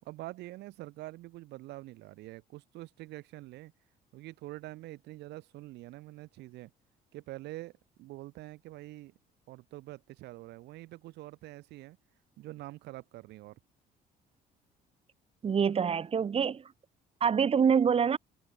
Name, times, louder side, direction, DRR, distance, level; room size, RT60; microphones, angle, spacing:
voice 1, 0.0-3.7 4.1-6.7 7.1-7.7 8.0-9.1 9.5-12.0 12.4-13.6, right 18 dB, 85° right, 5.9 m, -45 dB
voice 2, 15.4-16.7 17.2-18.2, right 7 dB, 35° right, 1.4 m, -26 dB
cardioid pair, 110°, 17 cm